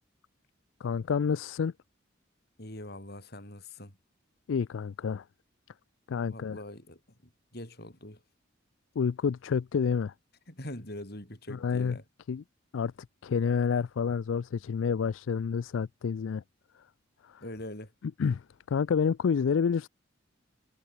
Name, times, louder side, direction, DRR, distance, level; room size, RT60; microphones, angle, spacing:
voice 1, 0.8-1.7 4.5-5.2 6.1-6.6 9.0-10.1 11.5-12.0 12.3-12.4 12.7-12.9 13.2-16.4 17.2-17.4 18.2-18.4 18.7-19.9, left 6 dB, 75° left, 0.4 m, -28 dB
voice 2, 2.6-3.9 6.2-7.0 7.5-8.2 10.5-12.0 17.4-17.9, left 1 dB, 55° left, 6.5 m, -43 dB
head